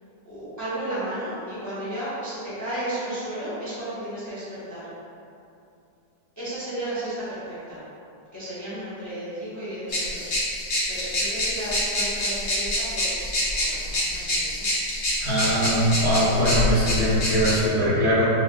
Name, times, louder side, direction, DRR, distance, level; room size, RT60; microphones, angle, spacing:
voice 1, 0.2-4.8 6.4-7.8 8.3-10.4 10.9-14.7, right 1 dB, 15° left, -12 dB, 0.8 m, -33 dB
sound 1, 9.9-17.6, left 1 dB, 50° left, 0.8 m, -26 dB
voice 2, 15.2-18.3, equal, 70° right, -12 dB, 1.8 m, -21 dB
5.6 x 2.2 x 2.3 m, 2.6 s
omnidirectional pair, 1.7 m